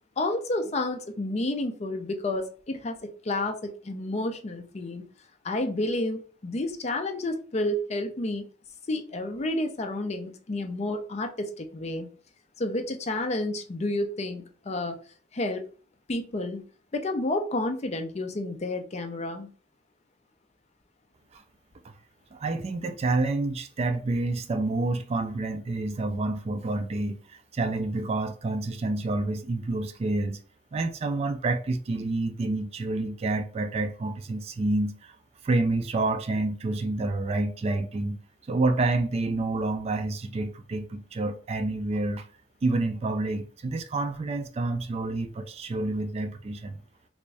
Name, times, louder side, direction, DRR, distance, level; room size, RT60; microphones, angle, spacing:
voice 1, 0.2-5.1 5.4-8.5 8.9-12.1 12.6-15.0 15.3-15.7 16.1-16.6 16.9-19.5, left 2 dB, 35° left, 0.5 m, -30 dB
voice 2, 22.3-30.4 30.7-35.2 35.4-38.2 38.5-42.2 42.6-46.8, right 2 dB, 35° right, 0.3 m, -28 dB
3.4 x 2.6 x 3.2 m
head